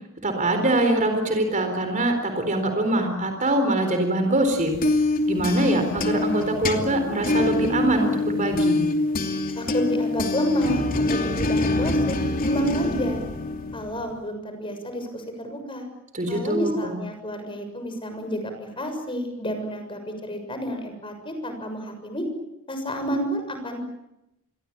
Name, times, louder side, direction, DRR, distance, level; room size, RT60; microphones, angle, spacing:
voice 1, 0.2-4.8 5.3-8.9 16.1-16.9, right 1 dB, 35° right, 6 dB, 4.0 m, -23 dB
sound 1, 4.5-14.1, left 2 dB, 40° left, 2.7 m, -25 dB
voice 2, 9.6-10.8 11.1-12.2 12.4-13.2 13.7-15.8 16.3-22.2 22.7-23.8, equal, 25° left, 6 dB, 6.9 m, -30 dB
28.5 x 22.0 x 8.8 m, 0.88 s
head